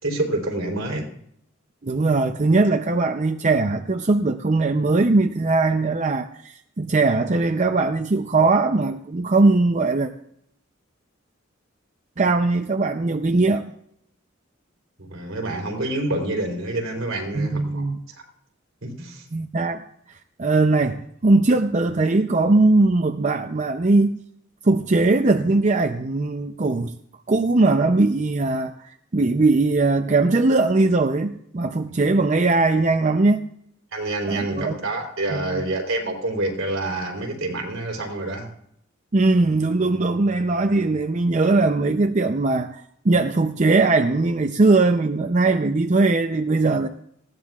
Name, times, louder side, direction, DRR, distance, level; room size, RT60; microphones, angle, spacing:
voice 1, 0.0-1.1 15.0-18.2 18.8-19.2 31.9-32.0 33.9-38.5, right 2 dB, 75° right, 3.6 m, -27 dB
voice 2, 1.8-10.1 12.2-13.7 17.3-18.0 19.3-24.1 24.6-26.9 27.3-33.4 34.3-34.7 35.3-35.6 39.1-46.9, right 3 dB, 35° right, 0.5 m, -20 dB
19.5 x 16.5 x 2.4 m
head